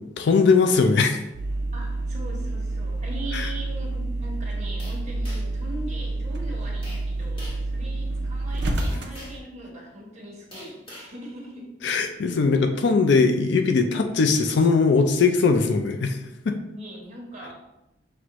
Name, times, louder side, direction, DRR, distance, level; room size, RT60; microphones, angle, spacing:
voice 1, 0.2-1.2 3.3-3.4 11.8-16.1 16.5-16.6, left 4 dB, 65° left, 6 dB, 0.4 m, -20 dB
sound 1, 1.3-9.4, right 2 dB, 65° right, 0.6 m, -29 dB
voice 2, 1.7-12.2 15.5-16.2 16.7-17.5, right 1 dB, 40° right, -3 dB, 1.2 m, -40 dB
sound 2, 4.8-5.6 6.8-7.1 7.4-7.7 8.8-9.5 10.5-11.1, equal, 30° left, 1.3 m, -43 dB
6.0 x 2.5 x 3.0 m, 0.90 s
head